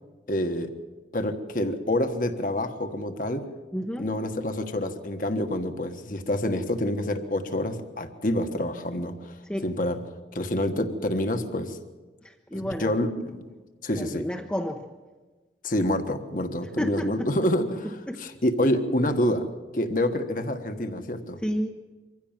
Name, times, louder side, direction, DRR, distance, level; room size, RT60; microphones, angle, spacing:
voice 1, 0.3-0.7 1.1-3.4 4.0-9.3 9.6-10.0 10.3-11.8 12.5-13.4 13.8-14.2 15.6-19.4 19.7-21.4, left 1 dB, 45° left, 7 dB, 1.5 m, -27 dB
voice 2, 3.7-4.1 9.5-9.7 12.2-13.0 13.9-14.9 16.8-17.3 18.1-18.2 21.4-21.7, equal, 5° left, 1 dB, 0.9 m, -30 dB
24.5 x 15.5 x 7.4 m, 1.3 s
head